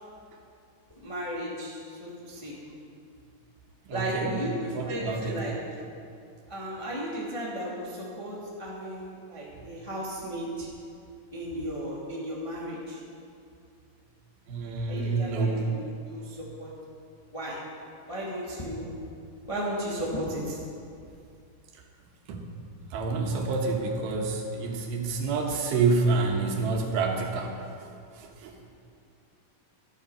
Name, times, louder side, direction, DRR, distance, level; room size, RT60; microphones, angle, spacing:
voice 1, 1.0-2.6 3.9-5.6 6.5-10.7 11.3-13.0 14.9-16.7 17.3-17.6 18.1-18.9 19.5-20.6, equal, 20° left, -6 dB, 0.8 m, -35 dB
voice 2, 3.9-4.3 4.7-5.4 14.5-15.7 22.3-22.4 22.9-27.5 27.8-27.9 28.2-28.5, right 4 dB, 85° right, 1 dB, 3.1 m, -28 dB
13.0 x 8.1 x 5.6 m, 2.4 s
omnidirectional pair, 4.3 m